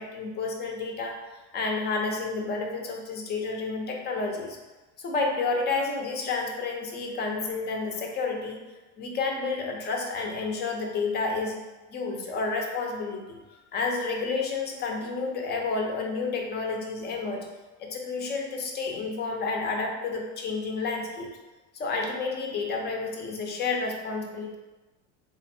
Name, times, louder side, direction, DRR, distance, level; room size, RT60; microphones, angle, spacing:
voice 1, 0.0-4.6 5.0-8.6 9.0-11.6 11.9-13.4 13.7-17.5 17.8-21.3 21.7-24.6, left 4 dB, 30° left, 1 dB, 0.6 m, -30 dB
3.6 x 2.2 x 4.2 m, 1.1 s
supercardioid pair, 120°, 36 cm